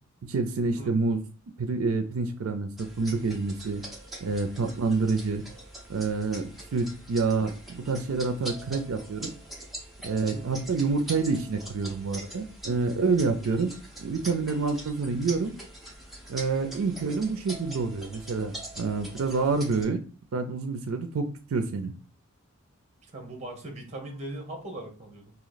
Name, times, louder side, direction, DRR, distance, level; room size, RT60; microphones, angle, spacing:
voice 1, 0.2-1.2 1.6-3.8 4.2-5.4 5.9-9.3 10.0-13.7 14.0-15.5 16.3-20.0 20.3-21.3 21.5-21.9, right 4 dB, 80° right, 7 dB, 0.5 m, -28 dB
sound 1, 2.8-19.8, right 1 dB, ahead, 0.9 m, -43 dB
voice 2, 10.3-10.6 17.1-17.2 23.0-25.3, right 1 dB, 35° right, 3 dB, 1.1 m, -40 dB
3.0 x 2.8 x 4.0 m, 0.39 s
head